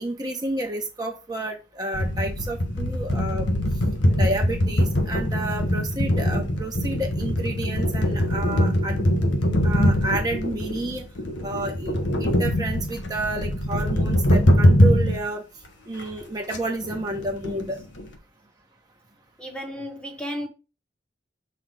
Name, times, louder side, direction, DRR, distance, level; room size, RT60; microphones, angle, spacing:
voice 1, 0.0-3.5 4.2-9.0 9.6-11.0 11.4-11.9 12.2-15.4 15.9-17.8, right 2 dB, 20° right, 1.0 m, -30 dB
sound 1, 1.9-15.2 15.6-15.7 16.0-16.1 16.5-16.6 16.8-18.1, equal, 90° left, 1.4 m, -22 dB
voice 2, 19.4-20.5, equal, 5° left, 1.2 m, -33 dB
6.0 x 3.9 x 6.2 m
head